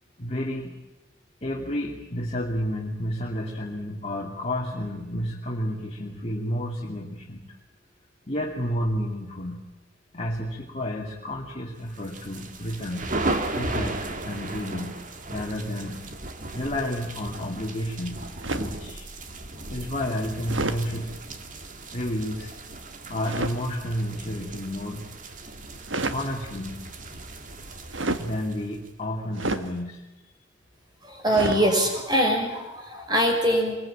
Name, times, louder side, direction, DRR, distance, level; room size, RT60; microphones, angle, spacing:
voice 1, 0.2-0.8 1.4-7.4 8.3-9.6 10.1-13.1 13.5-15.0 15.3-16.0 16.5-19.1 19.7-21.1 21.9-22.5 23.1-25.1 26.1-26.9 28.2-30.0, equal, 35° left, -2 dB, 2.6 m, -31 dB
sound 1, 11.9-28.9, right 2 dB, 40° right, 2.0 m, -36 dB
sound 2, 18.4-18.8 20.4-20.8 23.2-23.6 25.8-26.2 27.9-28.3 29.3-29.7 31.3-31.7, right 2 dB, 70° right, 1.6 m, -29 dB
voice 2, 31.0-33.8, equal, 20° right, 3 dB, 5.5 m, -23 dB
25.0 x 21.5 x 8.7 m, 1.0 s
head